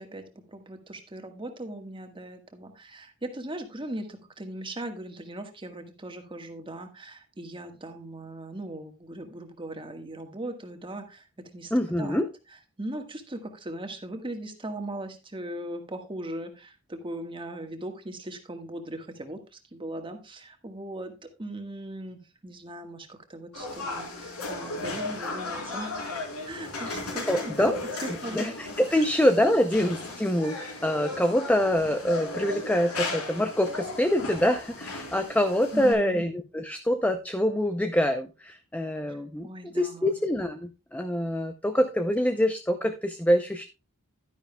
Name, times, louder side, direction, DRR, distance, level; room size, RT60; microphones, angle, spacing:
voice 1, 0.0-11.7 12.0-12.2 12.8-26.0 26.4-27.7 28.0-28.5 28.9-29.0 29.4-29.6 35.7-36.2 39.1-39.2 39.4-40.2, right 1 dB, 25° right, 5 dB, 1.5 m, -39 dB
voice 2, 11.7-12.3 26.9-27.0 27.3-27.8 28.3-39.5 39.8-43.6, equal, 5° left, 7 dB, 0.5 m, -25 dB
sound 1, 23.5-35.9, left 3 dB, 80° left, 4.0 m, -36 dB
11.5 x 10.0 x 2.3 m, 0.28 s
head